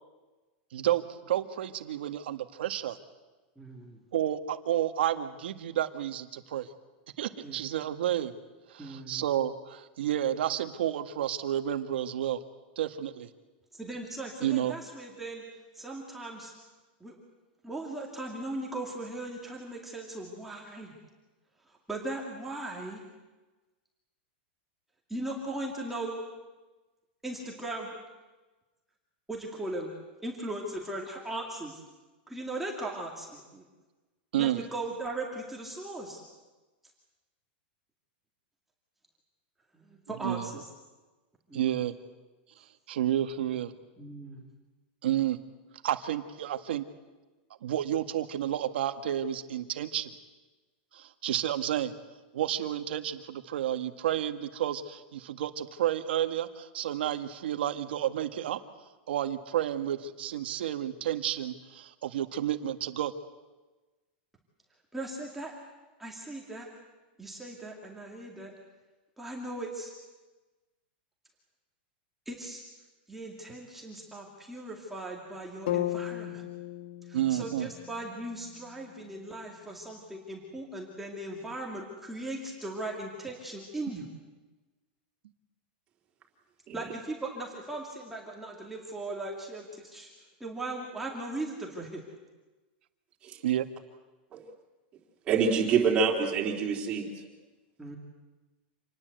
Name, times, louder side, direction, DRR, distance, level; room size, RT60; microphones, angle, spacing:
voice 1, 0.7-3.0 4.1-6.7 7.2-8.3 8.7-12.4 12.7-13.3 14.4-14.7 34.3-34.6 40.2-40.5 41.5-41.9 42.9-43.7 45.0-45.4 45.8-46.8 47.6-50.1 50.9-51.9 52.3-58.6 59.1-63.1 77.1-77.7 93.4-93.6, right 11 dB, 80° right, 8 dB, 1.8 m, -30 dB
voice 2, 3.6-4.0 7.4-7.6 8.8-9.2 13.7-15.4 15.7-16.5 17.0-17.1 17.6-20.9 21.7-23.0 25.1-26.2 27.2-27.9 29.3-29.9 30.2-31.8 32.3-33.7 34.4-36.2 39.7-40.6 41.5-41.7 44.0-44.4 64.9-65.5 66.0-66.7 67.2-68.5 69.2-69.9 72.3-72.6 73.1-76.4 77.1-84.1 86.7-90.1 90.4-92.0 97.8-98.0, right 2 dB, 5° right, -2 dB, 2.4 m, -38 dB
sound 1, 75.7-79.7, left 13 dB, 60° left, 1.8 m, -37 dB
voice 3, 95.3-97.1, right 5 dB, 20° right, -1 dB, 3.8 m, -26 dB
27.0 x 20.0 x 8.0 m, 1.2 s
supercardioid pair, 175°, 6 cm